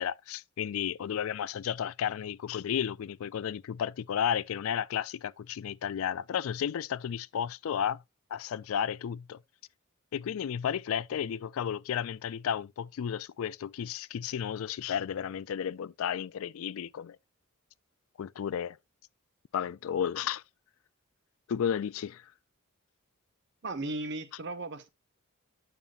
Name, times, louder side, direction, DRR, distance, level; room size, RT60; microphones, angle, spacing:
voice 1, 0.0-8.0 8.3-9.4 10.1-17.2 18.2-18.8 19.5-20.4 21.5-22.2, left 8 dB, 70° left, 0.3 m, -33 dB
voice 2, 23.6-24.9, right 2 dB, 55° right, 0.9 m, -36 dB
9.0 x 6.9 x 2.4 m
head